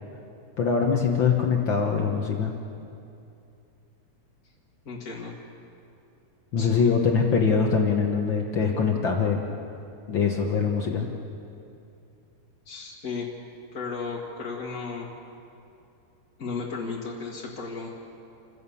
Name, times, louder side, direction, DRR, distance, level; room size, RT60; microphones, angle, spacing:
voice 1, 0.6-2.5 6.5-9.4 10.1-11.1, left 6 dB, 80° left, 1 dB, 1.0 m, -23 dB
voice 2, 4.8-5.3 6.6-6.9 12.6-13.3 13.7-15.1 16.4-17.9, left 4 dB, 35° left, -3 dB, 1.6 m, -34 dB
28.0 x 16.0 x 7.1 m, 2.6 s
omnidirectional pair, 4.4 m